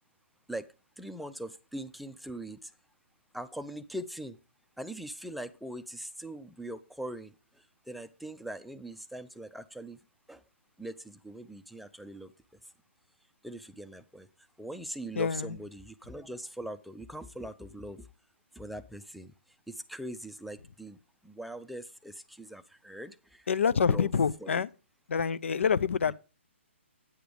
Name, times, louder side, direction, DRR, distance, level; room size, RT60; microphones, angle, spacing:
voice 1, 1.0-2.7 3.3-4.4 4.8-7.3 7.9-10.0 10.3-10.4 10.8-12.3 13.4-14.3 14.6-18.1 18.6-19.3 19.7-21.0 21.2-23.5 23.7-24.1 24.4-24.6 26.1-26.2, right 1 dB, ahead, 0.4 m, -41 dB
voice 2, 15.2-15.5 23.5-24.7 25.1-26.1, left 6 dB, 70° left, 0.6 m, -26 dB
9.4 x 6.7 x 5.1 m
hypercardioid pair, 140°, 7 cm